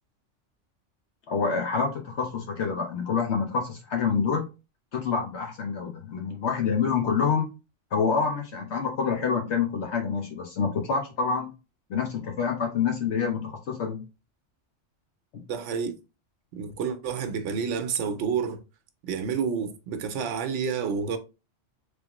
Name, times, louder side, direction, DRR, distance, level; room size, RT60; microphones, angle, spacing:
voice 1, 1.3-4.5 4.9-7.5 7.9-11.5 11.9-14.0, left 6 dB, 65° left, 1.0 m, -27 dB
voice 2, 15.5-15.9 16.5-18.6 19.0-21.2, right 6 dB, 75° right, 0.9 m, -29 dB
3.5 x 3.1 x 2.9 m
omnidirectional pair, 1.3 m